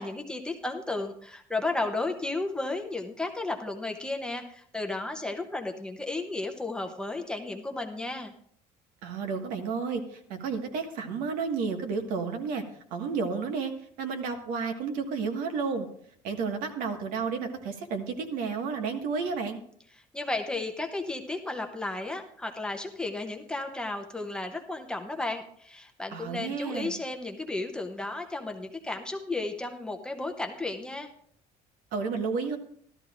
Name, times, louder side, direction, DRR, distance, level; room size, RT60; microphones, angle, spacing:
voice 1, 0.0-8.3 20.1-31.1, left 2 dB, 5° left, 3 dB, 0.7 m, -33 dB
voice 2, 9.0-12.6 12.9-13.7 14.0-15.9 16.2-19.6 26.1-27.0 31.9-32.6, right 5 dB, 80° right, 5 dB, 1.6 m, -31 dB
16.0 x 12.5 x 2.5 m, 0.63 s
cardioid pair, 170°, 14 cm